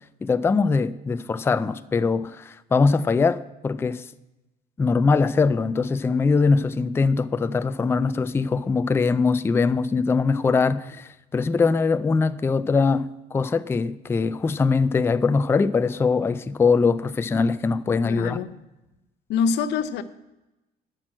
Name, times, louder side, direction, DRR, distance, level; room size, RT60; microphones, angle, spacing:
voice 1, 0.2-4.1 4.8-18.4, left 4 dB, 15° left, 0.3 m, -22 dB
voice 2, 18.1-18.6 19.3-20.0, left 6 dB, 85° left, 0.7 m, -25 dB
8.8 x 6.1 x 7.6 m
cardioid pair, 110°, 17 cm